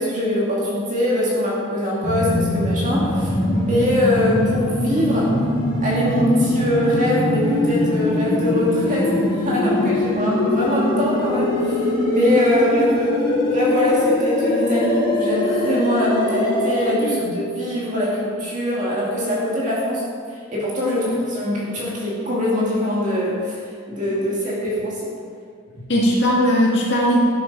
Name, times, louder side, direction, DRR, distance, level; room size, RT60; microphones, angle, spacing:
voice 1, 0.0-5.4 5.8-25.1, left 1 dB, 35° right, -5 dB, 2.3 m, -22 dB
sound 1, 2.0-16.9, left 1 dB, 20° left, 2.1 m, -22 dB
voice 2, 17.0-17.3 25.9-27.2, equal, 50° left, -4 dB, 2.0 m, -19 dB
13.0 x 7.9 x 5.3 m, 2.1 s
head